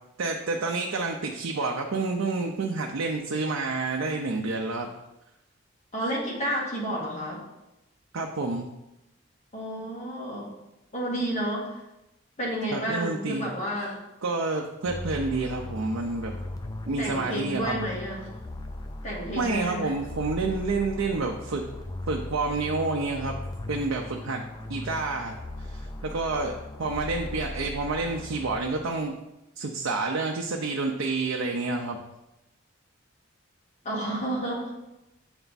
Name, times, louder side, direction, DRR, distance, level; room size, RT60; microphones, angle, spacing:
voice 1, 0.2-4.9 8.1-8.7 12.7-13.5 14.2-16.3 16.9-17.8 19.4-21.7 22.1-23.4 23.7-24.4 24.7-29.1 29.6-32.0, right 3 dB, 85° right, 1 dB, 0.5 m, -29 dB
voice 2, 5.9-7.4 9.5-10.5 10.9-11.8 12.4-14.0 17.0-18.3 19.0-19.9 33.8-34.7, right 1 dB, 35° left, -4 dB, 1.7 m, -31 dB
sound 1, 14.9-29.0, left 1 dB, 20° left, 0.4 m, -38 dB
7.9 x 3.4 x 4.0 m, 0.93 s
head